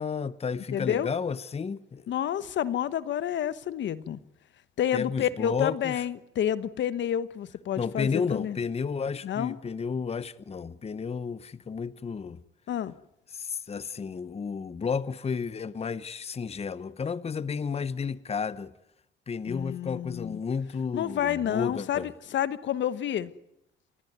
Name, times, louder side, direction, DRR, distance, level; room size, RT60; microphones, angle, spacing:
voice 1, 0.0-2.1 4.9-6.0 7.8-12.4 13.3-18.7 19.3-22.1, left 5 dB, 30° left, 0.9 m, -32 dB
voice 2, 0.7-1.1 2.1-4.2 4.8-8.6 9.2-9.6 12.7-12.9 19.5-20.4 20.9-23.3, left 10 dB, 70° left, 1.2 m, -29 dB
29.5 x 14.0 x 9.5 m
cardioid pair, 90°, 20 cm